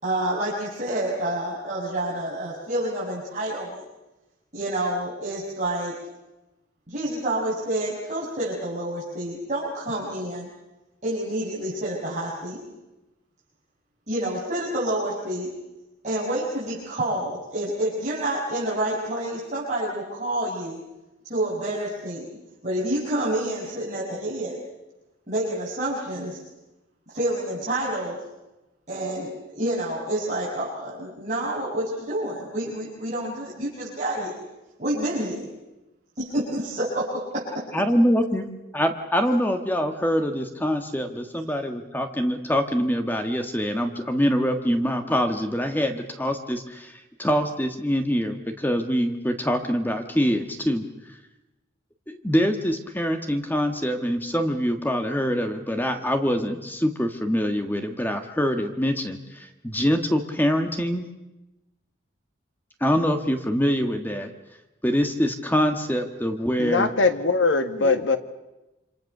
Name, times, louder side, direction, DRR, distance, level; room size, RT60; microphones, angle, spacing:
voice 1, 0.0-3.8 4.5-6.0 6.9-10.5 11.0-12.6 14.1-15.5 16.0-20.8 21.3-22.3 22.6-24.6 25.3-26.4 27.1-28.2 28.9-34.4 34.8-35.5 36.1-37.7, right 1 dB, 40° right, -7 dB, 6.4 m, -28 dB
voice 2, 37.7-38.5 38.7-51.2 52.1-61.1 62.8-64.3 64.8-66.9 67.8-67.9, equal, 10° left, 6 dB, 1.5 m, -24 dB
voice 3, 66.6-68.2, left 3 dB, 85° left, 9 dB, 1.8 m, -21 dB
27.0 x 27.0 x 6.7 m, 1.0 s
head